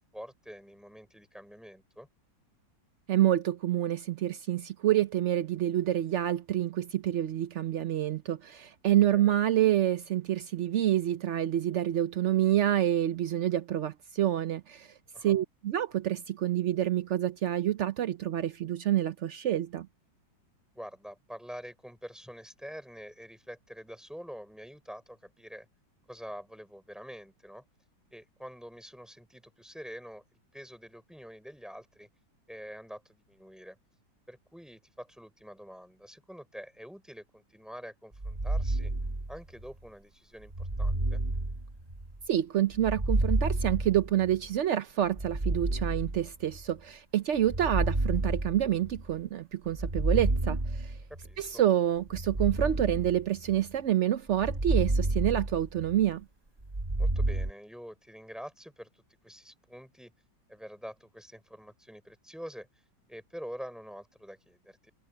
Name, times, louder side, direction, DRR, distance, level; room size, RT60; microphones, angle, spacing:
voice 1, 0.1-2.1 9.1-9.3 15.1-15.4 20.7-25.6 26.1-27.6 28.1-30.2 30.5-32.1 32.5-33.8 34.3-38.9 39.3-41.2 51.1-51.6 57.0-58.9 59.2-60.1 60.5-62.7 63.1-64.9, equal, ahead, 5.0 m, -46 dB
voice 2, 3.1-14.9 15.2-19.9 42.3-51.0 51.4-56.2, right 12 dB, 70° right, 0.6 m, -28 dB
sound 1, 38.2-39.7 40.5-42.2 42.7-44.5 45.1-46.7 47.4-49.2 49.7-51.3 52.1-53.7 54.3-56.1 56.6-57.5, right 2 dB, 20° right, 1.7 m, -30 dB
omnidirectional pair, 2.0 m